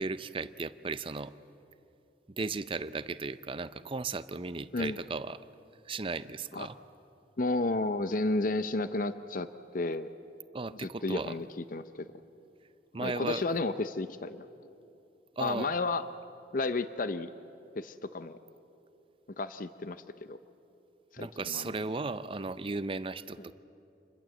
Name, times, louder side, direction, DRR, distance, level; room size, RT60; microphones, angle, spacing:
voice 1, 0.0-1.3 2.4-5.4 5.9-6.8 10.5-11.3 12.9-13.5 15.4-15.7 21.2-23.5, right 3 dB, 30° right, 14 dB, 0.6 m, -36 dB
voice 2, 7.4-10.1 10.8-11.5 11.7-12.1 13.0-14.5 15.4-16.0 16.5-17.3 17.8-18.4 19.4-20.0 20.3-20.4 21.1-21.8, left 2 dB, 50° left, 12 dB, 0.6 m, -32 dB
27.0 x 21.5 x 7.6 m, 2.7 s
head